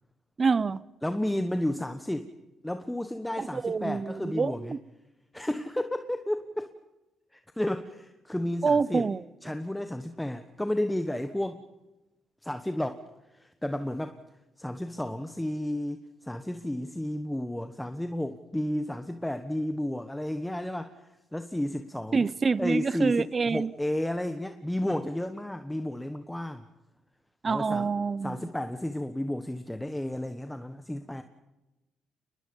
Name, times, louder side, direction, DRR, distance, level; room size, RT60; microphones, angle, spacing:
voice 1, 0.4-0.8 3.4-4.8 8.6-9.2 22.1-23.7 27.4-28.4, right 4 dB, 35° right, 0.8 m, -27 dB
voice 2, 1.0-2.3 2.6-4.7 5.3-6.7 7.3-9.1 9.4-11.6 12.4-13.0 13.3-14.2 14.6-22.3 22.6-26.6 27.4-27.9 28.2-31.2, left 1 dB, 5° left, 1.3 m, -32 dB
29.0 x 20.5 x 5.4 m
cardioid pair, 90°, 0 cm